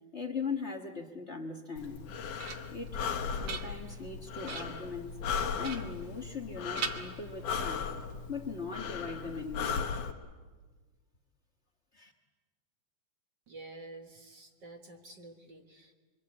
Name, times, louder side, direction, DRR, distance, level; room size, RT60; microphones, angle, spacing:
voice 1, 0.1-2.1 2.7-3.0 3.4-5.2 5.6-7.9 8.3-9.8 11.9-12.1, left 5 dB, 45° left, 3 dB, 0.9 m, -39 dB
Breathing, 1.8-10.1, left 6 dB, 90° left, 3.0 m, -37 dB
sound 1, 1.9-2.9 3.3-4.1 4.5-4.9 5.6-6.5 6.7-7.7, right 7 dB, 60° right, 2.1 m, -42 dB
voice 2, 13.5-15.9, right 2 dB, 45° right, 4 dB, 1.7 m, -49 dB
26.0 x 24.5 x 8.6 m, 1.4 s
omnidirectional pair, 3.6 m